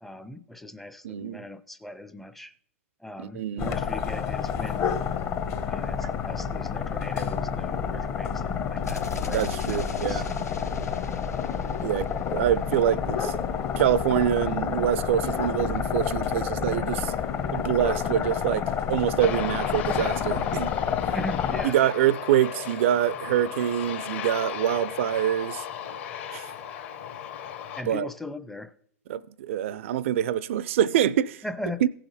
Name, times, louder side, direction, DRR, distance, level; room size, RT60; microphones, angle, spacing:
voice 1, 0.0-2.5 3.0-4.9 5.6-10.2 21.1-21.8 27.8-28.7 31.4-31.8, left 1 dB, ahead, 0.5 m, -39 dB
voice 2, 1.0-1.5 3.2-3.8 6.0-6.1 9.3-10.3 11.8-17.1 17.5-20.7 21.6-25.6 26.3-26.5 27.9-28.1 29.1-31.4 31.8-31.9, right 11 dB, 55° right, 0.4 m, -25 dB
sound 1, 3.6-21.7, left 7 dB, 30° left, 0.9 m, -29 dB
sound 2, 8.8-12.7, left 3 dB, 85° left, 1.1 m, -40 dB
Aircraft, 19.2-27.8, left 9 dB, 55° left, 1.6 m, -36 dB
16.0 x 5.8 x 4.1 m
figure-of-eight pair, 110°, 8 cm